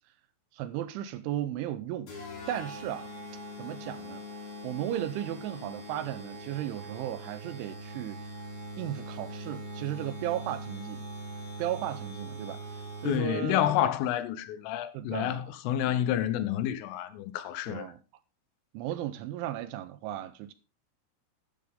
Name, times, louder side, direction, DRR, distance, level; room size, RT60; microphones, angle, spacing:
voice 1, 0.5-2.1 2.5-3.1 3.6-4.2 4.6-8.2 8.8-11.1 11.6-13.6 14.9-15.5 16.1-16.2 17.7-18.0 18.7-20.5, right 12 dB, 80° right, 3.0 m, -35 dB
sound 1, 2.1-13.5, right 1 dB, 50° left, 6.3 m, -42 dB
voice 2, 13.1-17.9, left 11 dB, 80° left, 3.6 m, -29 dB
13.5 x 10.5 x 3.7 m
omnidirectional pair, 5.9 m